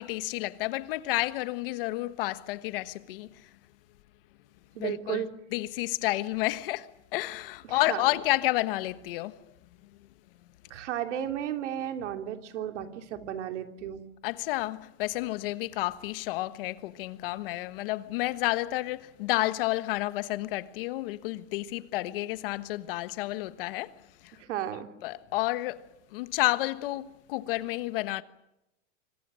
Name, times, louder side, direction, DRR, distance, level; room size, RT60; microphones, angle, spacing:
voice 1, 0.0-3.5 4.8-5.2 5.5-9.4 14.2-23.9 24.2-24.4 25.0-25.8 26.1-28.2, left 18 dB, 45° left, 1.4 m, -30 dB
voice 2, 4.7-5.3 7.6-8.0 10.7-14.0 24.4-24.9, right 10 dB, 70° right, 3.1 m, -34 dB
26.0 x 26.0 x 6.3 m
supercardioid pair, 165°, 37 cm